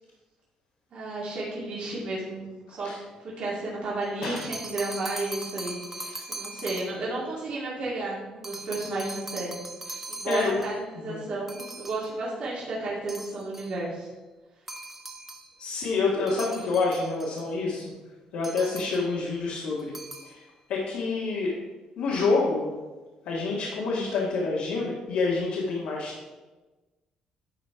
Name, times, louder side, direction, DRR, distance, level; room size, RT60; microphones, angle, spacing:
voice 1, 0.9-2.4 2.7-2.9 3.2-9.5 10.1-14.1, right 2 dB, 55° right, -6 dB, 2.2 m, -33 dB
sound 1, 4.0-7.1 8.4-10.9 11.5-12.2 13.1-13.8 14.7-15.5 16.3-17.5 18.4-19.1 19.8-20.4, right 2 dB, 15° right, 0.9 m, -40 dB
voice 2, 10.2-10.6 10.9-11.2 15.6-17.8 18.3-19.9 20.2-20.4 20.7-21.6 22.0-22.7 23.2-26.1, left 3 dB, 85° left, -5 dB, 1.6 m, -27 dB
10.5 x 4.2 x 4.6 m, 1.2 s
cardioid pair, 115°, 2 cm